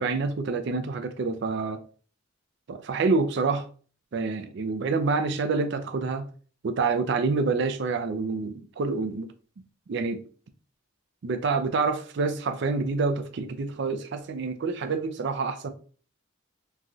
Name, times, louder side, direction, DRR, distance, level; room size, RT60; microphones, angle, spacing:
voice 1, 0.0-1.8 2.7-3.7 4.1-6.3 6.6-9.3 9.9-10.2 11.2-15.7, right 4 dB, 55° right, 0.4 m, -27 dB
3.1 x 2.3 x 2.6 m
head